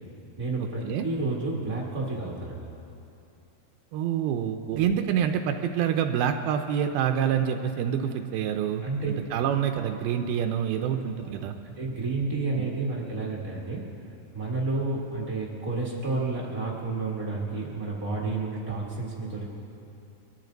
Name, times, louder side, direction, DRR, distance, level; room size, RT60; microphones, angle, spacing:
voice 1, 0.4-2.7 8.8-9.1 10.9-13.9 14.3-19.5, right 3 dB, 40° right, -4 dB, 1.2 m, -31 dB
voice 2, 3.9-8.9 9.3-11.5 12.6-12.7, right 9 dB, 80° right, 6 dB, 2.4 m, -27 dB
24.0 x 13.5 x 3.9 m, 2.8 s
omnidirectional pair, 4.4 m